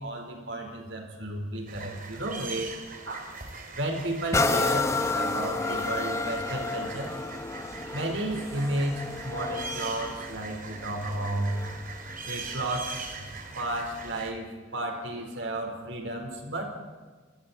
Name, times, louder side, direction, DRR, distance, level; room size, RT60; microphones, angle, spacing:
voice 1, 0.0-2.7 3.1-3.3 3.7-7.1 7.9-11.5 12.3-13.3 13.5-16.7, right 1 dB, 65° right, 2 dB, 4.7 m, -33 dB
sound 1, 1.7-14.3, right 3 dB, 45° right, 2.8 m, -41 dB
sound 2, 4.3-11.9 12.5-12.6, left 3 dB, 15° left, 0.9 m, -31 dB
28.0 x 20.5 x 4.5 m, 1.4 s
head